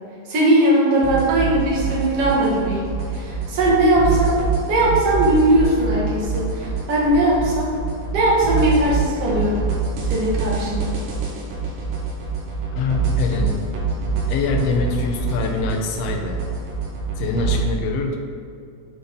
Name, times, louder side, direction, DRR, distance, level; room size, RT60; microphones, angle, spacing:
voice 1, 0.3-4.4 4.7-7.7 8.1-9.6 10.1-10.9, right 1 dB, 50° right, -5 dB, 2.3 m, -19 dB
sound 1, 1.0-17.6, right 5 dB, 90° right, 2.9 m, -25 dB
voice 2, 12.7-13.6 14.0-16.4 17.2-18.2, left 4 dB, 75° left, 2 dB, 1.4 m, -24 dB
9.4 x 4.2 x 3.9 m, 2.4 s
omnidirectional pair, 3.8 m